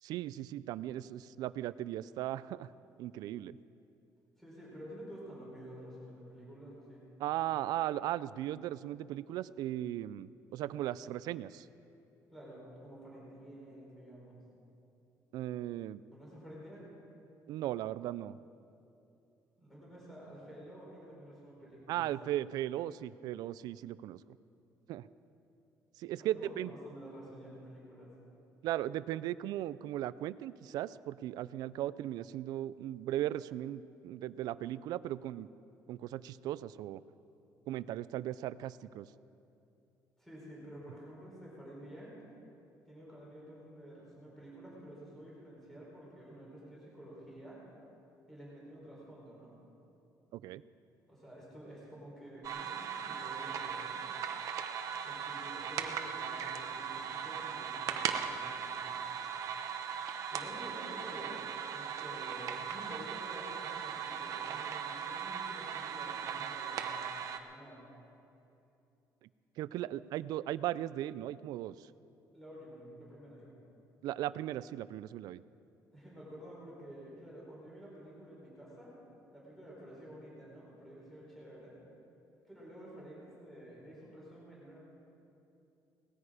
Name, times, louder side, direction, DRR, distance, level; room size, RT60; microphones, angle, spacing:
voice 1, 0.0-2.7 3.0-3.6 7.2-11.7 15.3-16.0 17.5-18.4 21.9-24.2 24.9-25.1 26.0-26.7 28.6-35.5 35.9-37.0 37.7-39.1 50.3-50.6 69.2-69.3 69.6-71.9 74.0-75.4, right 13 dB, 75° right, 17 dB, 0.4 m, -37 dB
voice 2, 4.4-7.0 12.3-14.4 16.1-16.8 19.6-22.1 26.2-28.1 40.2-42.1 42.9-47.6 48.3-49.6 51.1-54.1 55.0-59.0 60.3-61.5 61.7-67.8 72.3-73.6 75.9-79.0 79.3-81.8 82.5-84.8, equal, 5° left, -6 dB, 4.1 m, -50 dB
sound 1, 52.4-67.4, right 7 dB, 55° right, 0.8 m, -38 dB
18.5 x 14.0 x 4.9 m, 2.7 s
cardioid pair, 180°, 7 cm